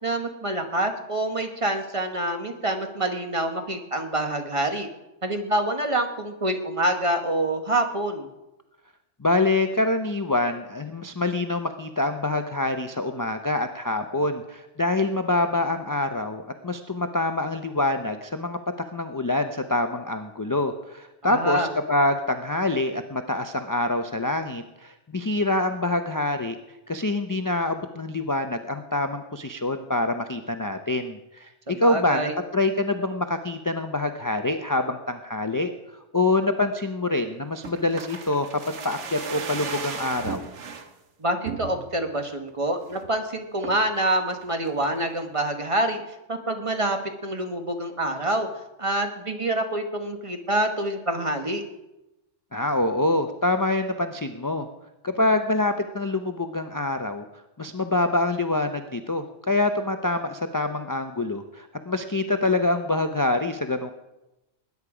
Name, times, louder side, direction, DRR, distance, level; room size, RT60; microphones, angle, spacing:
voice 1, 0.0-4.9 5.2-8.3 21.2-21.7 31.7-32.3 41.2-46.0 46.3-48.5 48.8-51.6, right 1 dB, 30° right, 5 dB, 1.2 m, -26 dB
voice 2, 9.2-18.6 18.9-26.6 26.9-31.5 31.8-35.7 36.1-40.4 52.5-54.7 55.0-57.3 57.6-63.9, left 2 dB, 25° left, 7 dB, 0.5 m, -25 dB
sound 1, 37.6-40.9 41.4-42.1 42.5-42.6 42.8-43.1 43.6-44.0 44.4-45.1 45.4-45.5, right 5 dB, 80° right, 1.4 m, -36 dB
20.0 x 9.6 x 4.9 m, 0.96 s
omnidirectional pair, 1.2 m